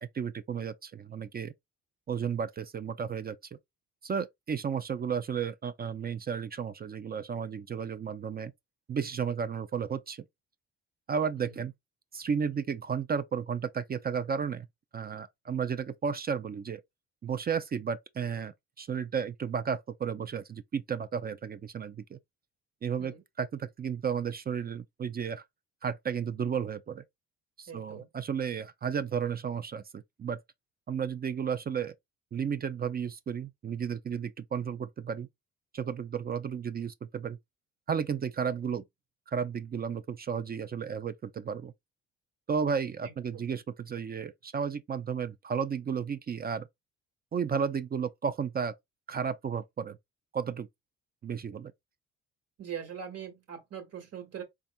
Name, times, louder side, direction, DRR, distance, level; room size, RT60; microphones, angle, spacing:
voice 1, 0.0-1.5 2.1-3.4 4.0-8.5 8.9-10.2 11.1-11.7 12.1-14.7 14.9-16.8 17.2-22.2 22.8-25.4 25.8-27.0 27.6-30.4 30.9-31.9 32.3-35.3 35.7-37.4 37.9-38.8 39.3-41.7 42.5-46.7 47.3-48.7 49.1-50.0 50.3-50.7 51.2-51.7, right 7 dB, 30° right, 0.4 m, -33 dB
voice 2, 27.7-28.1 43.0-43.5 52.6-54.4, right 8 dB, 55° right, 1.6 m, -42 dB
4.1 x 3.5 x 2.2 m
cardioid pair, 90°, 30 cm